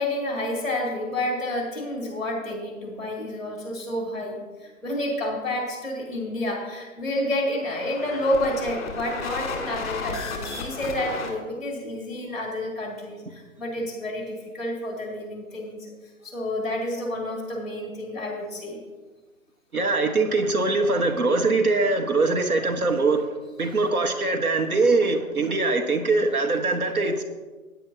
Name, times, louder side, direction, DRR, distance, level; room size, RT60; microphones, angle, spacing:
voice 1, 0.0-15.9 16.2-18.8, left 1 dB, ahead, -1 dB, 2.4 m, -29 dB
sound 1, 7.5-11.3, left 4 dB, 25° left, 2.0 m, -34 dB
voice 2, 19.7-23.3 23.6-27.2, right 3 dB, 80° right, 5 dB, 1.4 m, -22 dB
16.5 x 9.8 x 2.8 m, 1.3 s
figure-of-eight pair, 145°, 43 cm